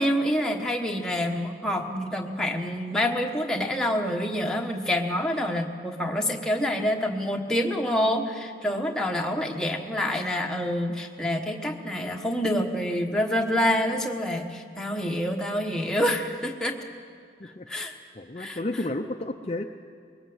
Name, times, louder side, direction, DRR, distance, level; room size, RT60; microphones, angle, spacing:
voice 1, 0.0-16.8 17.7-17.9 18.4-18.8, equal, 5° left, 1 dB, 1.2 m, -27 dB
voice 2, 18.2-19.6, left 2 dB, 35° left, 4 dB, 0.6 m, -31 dB
21.5 x 18.5 x 7.9 m, 2.2 s
head